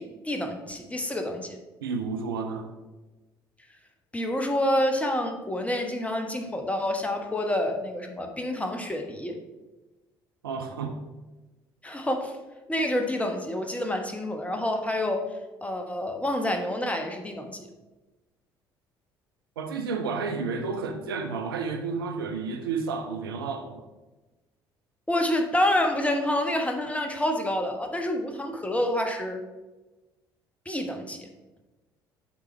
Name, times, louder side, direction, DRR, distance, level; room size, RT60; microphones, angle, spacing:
voice 1, 0.0-1.6 4.1-9.4 11.8-12.4 12.7-15.3 15.6-17.6 25.1-29.4 30.7-31.3, left 1 dB, 10° left, 4 dB, 1.1 m, -28 dB
voice 2, 1.8-2.7 10.4-11.0 19.6-23.8, right 4 dB, 75° right, 6 dB, 0.5 m, -31 dB
8.5 x 3.8 x 4.4 m, 1.1 s
figure-of-eight pair, 50°, 12 cm